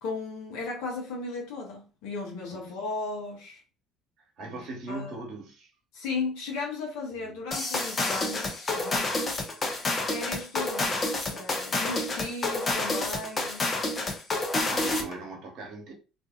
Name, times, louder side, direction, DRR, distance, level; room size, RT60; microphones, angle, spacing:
voice 1, 0.0-3.6 4.5-4.6 4.9-5.2 5.9-9.5 9.9-13.7, left 3 dB, 70° left, 0.8 m, -36 dB
voice 2, 4.2-5.7 7.1-7.4 14.6-15.9, right 2 dB, 60° right, 1.0 m, -40 dB
sound 1, 7.5-15.2, left 2 dB, 35° left, 0.7 m, -29 dB
2.5 x 2.5 x 2.3 m
hypercardioid pair, 60°, 0 cm